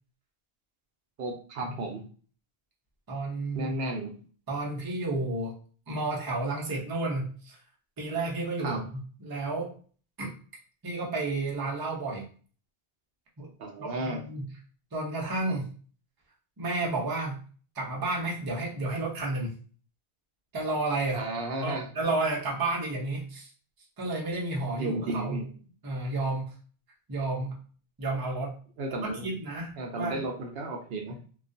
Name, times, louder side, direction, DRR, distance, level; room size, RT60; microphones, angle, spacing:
voice 1, 1.2-2.0 3.5-4.1 8.6-8.8 13.6-14.2 21.1-21.9 24.8-25.5 28.8-29.2 29.8-31.2, right 2 dB, 70° right, 2 dB, 0.8 m, -33 dB
voice 2, 3.1-3.7 4.5-5.5 5.9-7.6 8.0-8.8 9.2-9.7 10.2-10.3 10.8-12.2 13.4-13.5 13.8-14.5 14.9-15.7 16.6-17.4 17.8-19.5 20.5-21.2 21.6-23.5 24.0-25.4 25.8-26.5 27.1-27.6 28.0-28.6 29.0-30.2, right 2 dB, 25° right, -2 dB, 0.6 m, -31 dB
2.3 x 2.3 x 2.5 m, 0.41 s
omnidirectional pair, 1.1 m